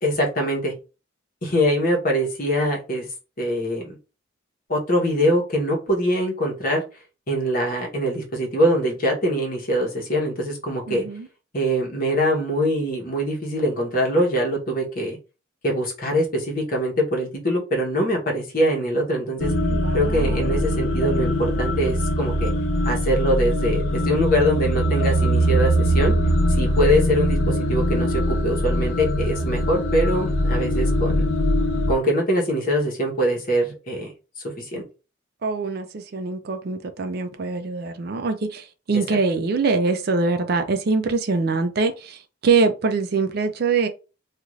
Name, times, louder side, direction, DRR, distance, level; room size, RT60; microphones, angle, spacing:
voice 1, 0.0-0.7 1.4-3.1 3.4-4.0 4.7-6.8 7.3-11.0 11.5-15.2 15.6-19.5 19.9-22.5 22.8-26.1 26.6-31.3 31.9-34.1 34.4-34.8, equal, 45° left, 0.9 m, -23 dB
voice 2, 10.9-11.3 19.7-20.8 35.4-43.9, right 4 dB, 50° right, 0.4 m, -24 dB
sound 1, 19.4-31.9, equal, 90° left, 0.6 m, -22 dB
2.5 x 2.4 x 3.1 m
head